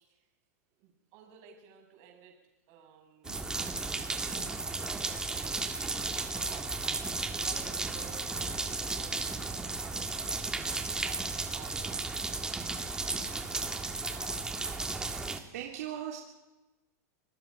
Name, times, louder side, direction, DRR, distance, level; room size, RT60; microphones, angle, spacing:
voice 1, 0.8-2.4 2.7-3.3 3.8-5.9 6.2-15.1, right 8 dB, 50° right, 1 dB, 7.0 m, -55 dB
sound 1, 3.2-15.4, right 3 dB, 10° right, 1.8 m, -34 dB
voice 2, 3.2-3.6 15.5-16.2, right 11 dB, 75° right, -1 dB, 3.1 m, -39 dB
27.5 x 19.5 x 5.4 m, 1.0 s
supercardioid pair, 145°, 9 cm